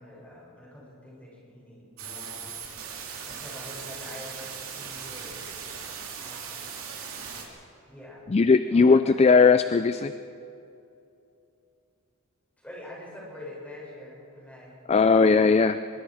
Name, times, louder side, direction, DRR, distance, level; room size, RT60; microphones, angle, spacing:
voice 1, 0.0-2.6 3.3-5.5 6.2-6.7 7.9-8.2 8.7-9.3 9.7-10.1 12.6-14.8 15.9-16.0, left 1 dB, 5° left, -5 dB, 7.1 m, -45 dB
sound 1, 2.0-7.4, right 6 dB, 70° right, 3.0 m, -39 dB
voice 2, 8.3-10.1 14.9-15.8, left 4 dB, 30° left, 12 dB, 0.4 m, -18 dB
24.0 x 23.0 x 4.9 m, 2.7 s
head